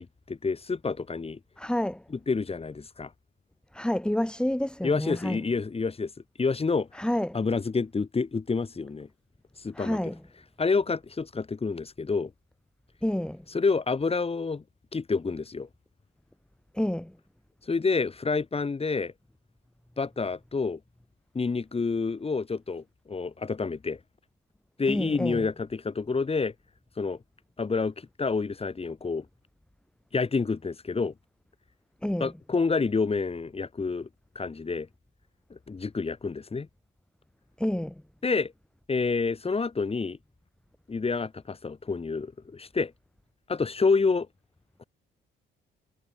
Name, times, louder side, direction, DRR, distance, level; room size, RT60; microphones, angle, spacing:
voice 1, 0.0-1.4 2.3-3.1 4.8-6.1 6.4-6.9 7.3-9.1 9.6-10.0 10.6-12.3 13.5-14.6 14.9-15.7 17.7-19.1 20.0-20.8 21.3-24.0 24.8-26.5 27.0-27.2 27.6-29.2 30.1-31.1 32.2-34.1 34.3-34.9 35.5-36.7 38.2-38.5 38.9-40.2 40.9-42.9 43.5-44.3 44.8-44.9, left 4 dB, 30° left, 4.5 m, -28 dB
voice 2, 1.6-2.0 3.7-5.4 7.0-7.4 9.8-10.2 13.0-13.4 16.7-17.1 24.9-25.5 32.0-32.3 37.6-37.9, left 1 dB, 5° left, 3.5 m, -29 dB
cardioid pair, 90°, 20 cm